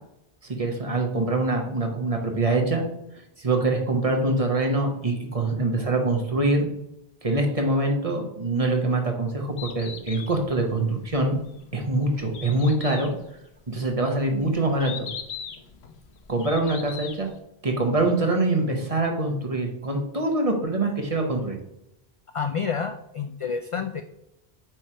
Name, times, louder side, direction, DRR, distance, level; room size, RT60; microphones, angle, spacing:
voice 1, 0.5-2.8 3.4-6.7 7.2-11.4 11.7-13.1 13.7-15.1 16.3-17.3 17.6-21.6, right 2 dB, 35° right, 3 dB, 1.2 m, -24 dB
Bird, 9.4-17.4, left 7 dB, 90° left, 1.1 m, -41 dB
voice 2, 22.3-24.0, left 6 dB, 60° left, 7 dB, 0.3 m, -29 dB
9.0 x 3.3 x 4.4 m, 0.84 s
omnidirectional pair, 1.1 m